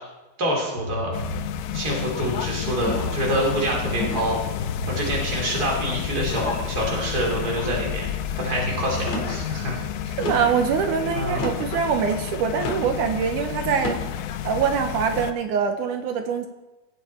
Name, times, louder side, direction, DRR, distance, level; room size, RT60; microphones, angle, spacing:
voice 1, 0.4-1.2 1.7-4.4 4.9-8.1 8.3-9.8 11.1-11.5, right 1 dB, 25° right, -2 dB, 3.3 m, -26 dB
sound 1, 0.8-10.6, left 2 dB, 25° left, 3.9 m, -35 dB
sound 2, 1.1-15.3, left 10 dB, 85° left, 2.4 m, -31 dB
sound 3, 2.8-3.3 4.0-4.4 5.1-5.6 6.3-6.7 7.4-7.8 8.9-9.4 10.2-10.6 11.3-11.8 12.6-12.9 13.7-14.1, left 3 dB, 55° left, 2.8 m, -32 dB
voice 2, 10.1-14.0 14.4-16.5, right 7 dB, 75° right, 6 dB, 2.1 m, -24 dB
17.0 x 7.8 x 4.3 m, 1.0 s
omnidirectional pair, 4.0 m